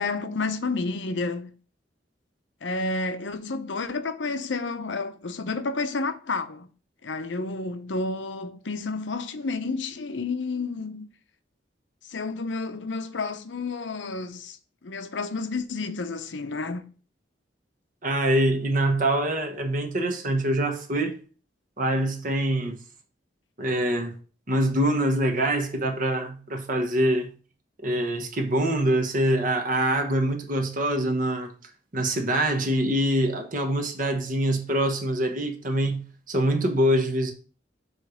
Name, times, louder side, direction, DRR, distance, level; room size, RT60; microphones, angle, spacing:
voice 1, 0.0-1.5 2.6-6.7 7.0-11.1 12.0-16.9, left 3 dB, 90° left, 0.7 m, -30 dB
voice 2, 18.0-21.2 21.8-22.8 23.6-24.1 24.5-27.3 27.8-31.5 31.9-37.3, right 1 dB, 50° right, 1.1 m, -24 dB
7.4 x 3.2 x 4.9 m
head